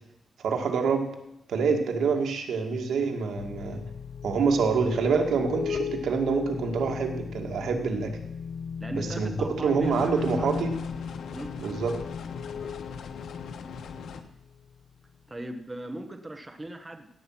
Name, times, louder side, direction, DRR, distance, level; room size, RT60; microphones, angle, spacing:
voice 1, 0.4-1.1 1.5-3.8 4.2-8.1 8.9-10.7 11.6-11.9, right 5 dB, 80° right, 3 dB, 2.3 m, -26 dB
sound 1, 3.4-14.7, left 6 dB, 45° left, 0.5 m, -37 dB
voice 2, 8.8-10.5 11.3-11.5 15.3-17.1, right 1 dB, 15° right, 6 dB, 1.2 m, -39 dB
sound 2, 9.8-14.2, left 6 dB, 85° left, 1.3 m, -40 dB
17.0 x 8.7 x 6.0 m, 0.85 s
wide cardioid pair, 145°, 0 cm